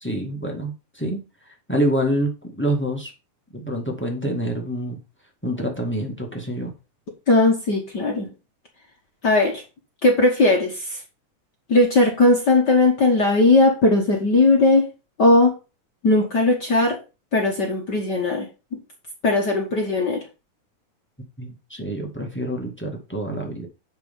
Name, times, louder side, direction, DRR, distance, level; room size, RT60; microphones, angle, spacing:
voice 1, 0.0-1.2 1.7-3.1 3.6-5.0 5.4-6.7 21.4-23.7, right 1 dB, 5° left, 1.1 m, -26 dB
voice 2, 7.3-8.3 9.2-9.6 10.0-11.0 11.7-14.9 15.2-15.5 16.0-17.0 17.3-18.5 19.2-20.2, left 2 dB, 45° left, 1.5 m, -18 dB
9.4 x 4.5 x 5.5 m
omnidirectional pair, 3.6 m